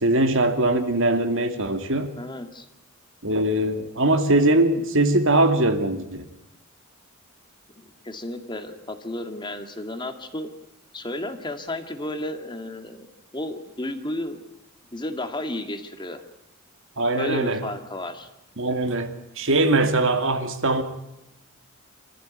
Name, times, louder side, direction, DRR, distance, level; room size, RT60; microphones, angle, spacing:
voice 1, 0.0-2.1 3.2-6.3 17.0-17.6 18.6-19.1 19.4-20.8, right 2 dB, 60° right, 7 dB, 2.5 m, -21 dB
voice 2, 2.2-2.7 7.8-10.5 10.9-13.1 13.3-14.4 14.9-16.2 17.2-18.3, left 1 dB, 20° left, 7 dB, 2.0 m, -33 dB
26.0 x 14.5 x 9.3 m, 0.89 s
head